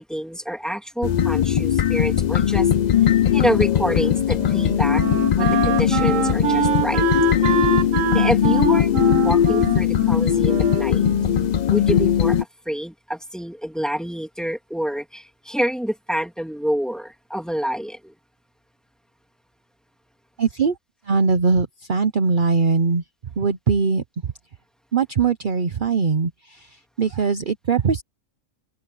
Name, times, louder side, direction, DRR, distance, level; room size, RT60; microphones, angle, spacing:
voice 1, 0.0-2.7 3.3-5.0 5.4-7.0 8.1-11.1 11.7-18.1, equal, ahead, 2.6 m, -27 dB
sound 1, 1.0-12.4, left 9 dB, 75° left, 0.4 m, -19 dB
Wind instrument woodwind instrument, 3.8-11.6, right 10 dB, 80° right, 1.2 m, -26 dB
voice 2, 20.4-20.8 21.0-23.0 23.4-24.0 24.9-28.0, right 5 dB, 45° right, 1.0 m, -21 dB
omnidirectional pair, 1.3 m